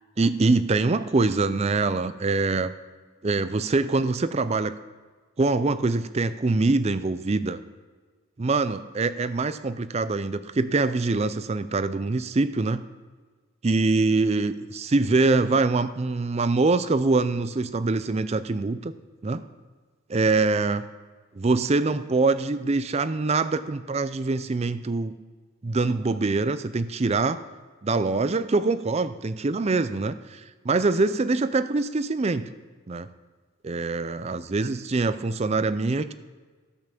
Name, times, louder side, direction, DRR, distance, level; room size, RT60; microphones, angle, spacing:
voice 1, 0.2-2.7 3.2-4.7 5.4-7.6 8.4-12.8 13.6-18.9 19.2-19.4 20.1-20.9 21.4-25.2 25.6-27.4 27.8-32.5 32.9-33.1 33.6-36.1, right 3 dB, 30° right, 13 dB, 0.4 m, -24 dB
12.5 x 5.7 x 6.8 m, 1.4 s
head